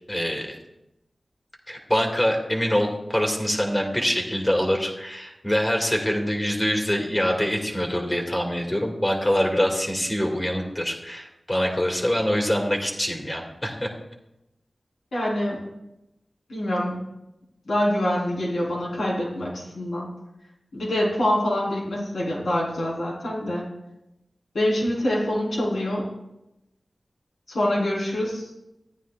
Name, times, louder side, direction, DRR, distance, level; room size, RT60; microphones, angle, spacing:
voice 1, 0.1-0.6 1.7-13.9, equal, 20° left, 1 dB, 2.2 m, -24 dB
voice 2, 15.1-15.7 16.5-17.0 17.7-20.1 20.7-23.6 24.5-26.0 27.5-28.5, left 1 dB, 90° left, -6 dB, 4.0 m, -25 dB
14.0 x 9.3 x 2.4 m, 0.92 s
cardioid pair, 45°, 0 cm